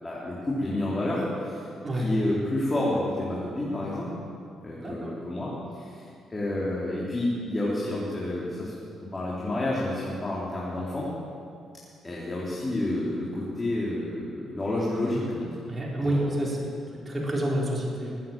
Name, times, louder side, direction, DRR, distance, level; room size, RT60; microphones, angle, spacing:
voice 1, 0.0-1.6 1.9-4.1 4.6-8.7 9.0-11.1 12.0-15.6 16.0-16.3, left 1 dB, 25° left, -7 dB, 3.7 m, -29 dB
voice 2, 4.8-5.1 15.7-16.8 17.1-18.2, right 1 dB, 25° right, -3 dB, 4.2 m, -28 dB
20.5 x 9.3 x 7.5 m, 2.5 s
cardioid pair, 90°, 0 cm